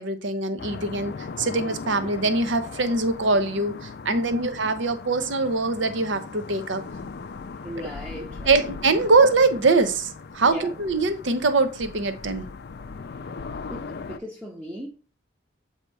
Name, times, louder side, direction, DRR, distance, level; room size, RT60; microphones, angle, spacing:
voice 1, 0.0-6.8 8.5-12.5, right 3 dB, 65° right, 0.7 m, -23 dB
sound 1, 0.6-14.2, left 4 dB, 50° left, 0.4 m, -38 dB
voice 2, 4.1-4.5 7.6-8.6 10.4-10.7 13.7-14.9, left 1 dB, 10° right, 0.7 m, -37 dB
8.0 x 2.9 x 4.6 m
head